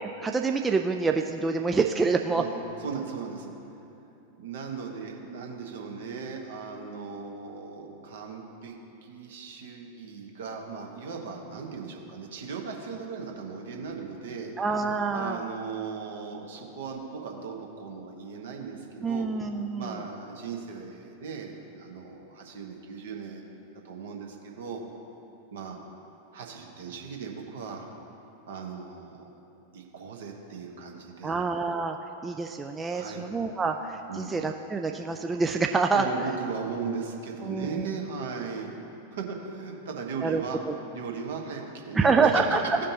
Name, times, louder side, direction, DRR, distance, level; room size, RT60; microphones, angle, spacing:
voice 1, 0.0-2.4 14.6-15.4 19.0-20.0 31.2-32.0 32.2-36.1 37.4-37.8 40.2-40.7 41.9-42.8, right 4 dB, 15° right, 3 dB, 0.3 m, -26 dB
voice 2, 2.3-3.5 4.3-8.7 9.0-19.3 19.8-23.4 23.7-24.8 25.5-25.8 26.3-27.9 28.5-29.3 29.7-31.4 32.9-33.3 34.1-34.3 35.9-38.7 39.1-42.6, right 5 dB, 60° right, 1 dB, 1.1 m, -37 dB
15.0 x 5.1 x 2.8 m, 2.9 s
figure-of-eight pair, 90°, 0 cm